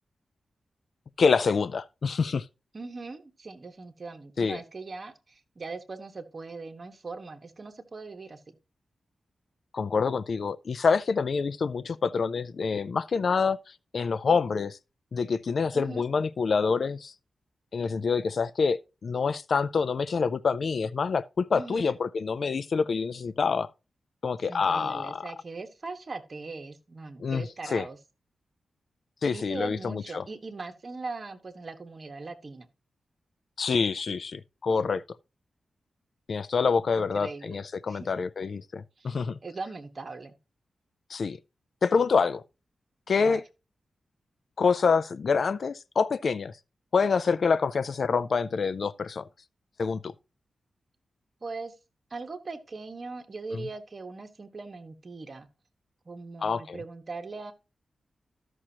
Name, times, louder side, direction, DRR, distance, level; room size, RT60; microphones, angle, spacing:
voice 1, 1.2-2.5 4.4-4.6 9.7-14.8 15.1-17.1 17.7-23.7 24.2-25.2 27.2-27.9 29.2-30.2 33.6-35.0 36.3-39.4 41.1-41.4 41.8-42.4 43.1-43.4 44.6-46.5 46.9-49.3 49.8-50.1 53.5-53.6 56.4-56.8, left 5 dB, 65° left, 0.3 m, -26 dB
voice 2, 2.7-8.5 15.7-16.0 21.5-21.9 24.5-28.0 29.3-32.7 37.0-37.6 37.9-38.1 39.0-40.4 43.2-43.4 51.4-51.7 52.1-55.5 56.0-57.5, right 3 dB, 45° right, 1.4 m, -40 dB
13.0 x 6.2 x 2.9 m
cardioid pair, 75°, 0 cm